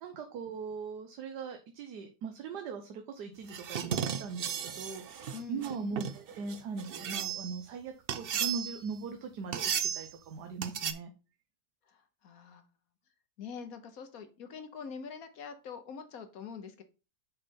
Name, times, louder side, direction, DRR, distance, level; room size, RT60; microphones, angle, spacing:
voice 1, 0.0-11.1, right 5 dB, 85° right, 6 dB, 1.4 m, -40 dB
sound 1, 3.5-7.6 8.1-8.9 9.5-10.1 10.6-10.9, right 8 dB, 60° right, 0.6 m, -35 dB
voice 2, 5.3-6.1 11.9-12.6 13.4-16.8, left 6 dB, 65° left, 8 dB, 1.3 m, -45 dB
6.5 x 4.2 x 5.3 m, 0.31 s
omnidirectional pair, 1.7 m